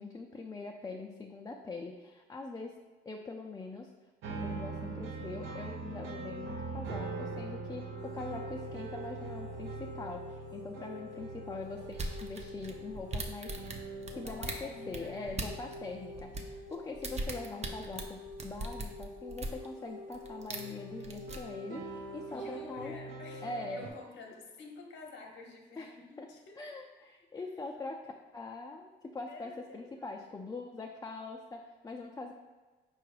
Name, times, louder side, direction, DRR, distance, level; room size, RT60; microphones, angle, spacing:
voice 1, 0.0-2.8 3.1-3.9 4.3-13.5 14.2-23.0 23.4-23.9 25.8-26.3 26.6-32.3, left 3 dB, 15° left, 1 dB, 0.4 m, -43 dB
sound 1, 4.2-16.8 19.8-23.9, right 3 dB, 80° right, 0.6 m, -43 dB
sound 2, 8.0-23.0, left 2 dB, 50° right, 1.1 m, -48 dB
voice 2, 10.9-11.7 14.1-15.4 22.3-26.6 29.3-30.1, left 4 dB, 65° left, 1 dB, 0.9 m, -50 dB
sound 3, 11.9-15.8 16.1-19.7 20.1-20.7 21.0-21.4, right 2 dB, 35° right, 0.6 m, -39 dB
4.8 x 2.3 x 4.8 m, 1.3 s
cardioid pair, 90°, 20 cm